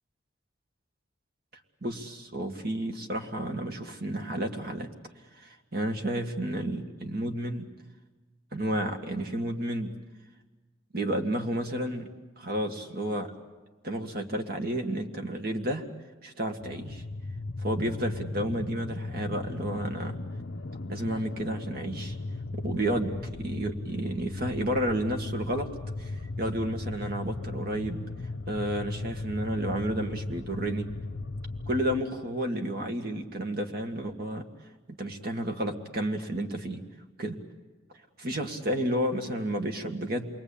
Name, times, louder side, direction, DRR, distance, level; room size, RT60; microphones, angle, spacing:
voice 1, 1.8-4.9 5.4-7.7 8.5-9.9 10.9-12.1 12.4-13.3 13.8-15.9 16.2-17.0 17.6-20.1 20.9-22.1 22.5-25.7 26.0-26.1 26.4-28.0 28.5-30.9 31.7-34.5 34.9-36.8 37.2-37.4 38.2-40.3, right 1 dB, 55° right, 4 dB, 2.0 m, -31 dB
sound 1, 16.6-32.0, left 2 dB, 85° left, 0.8 m, -37 dB
28.0 x 22.5 x 8.7 m, 1.2 s
head